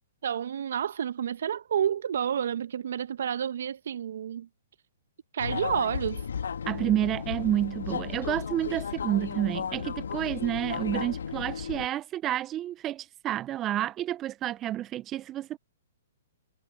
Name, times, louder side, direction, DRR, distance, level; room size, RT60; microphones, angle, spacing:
voice 1, 0.2-4.5 5.3-6.2, right 9 dB, 65° right, 1.3 m, -30 dB
sound 1, 5.4-11.9, left 7 dB, 75° left, 1.8 m, -34 dB
voice 2, 6.7-15.6, right 13 dB, 25° right, 0.9 m, -30 dB
hypercardioid pair, 125°, 0 cm